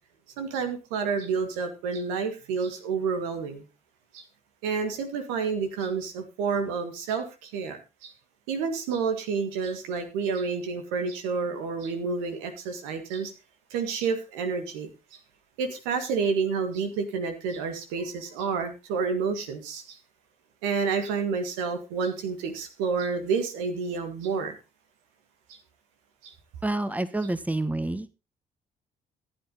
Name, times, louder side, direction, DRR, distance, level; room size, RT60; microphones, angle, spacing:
voice 1, 0.4-3.7 4.1-4.2 4.6-8.1 8.5-13.3 13.7-15.2 15.6-20.0 20.6-24.5 26.2-26.3, right 5 dB, 80° right, 6 dB, 1.9 m, -29 dB
voice 2, 26.6-28.2, right 2 dB, 5° right, 13 dB, 1.3 m, -28 dB
14.5 x 8.9 x 4.0 m, 0.29 s
hypercardioid pair, 45°, 21 cm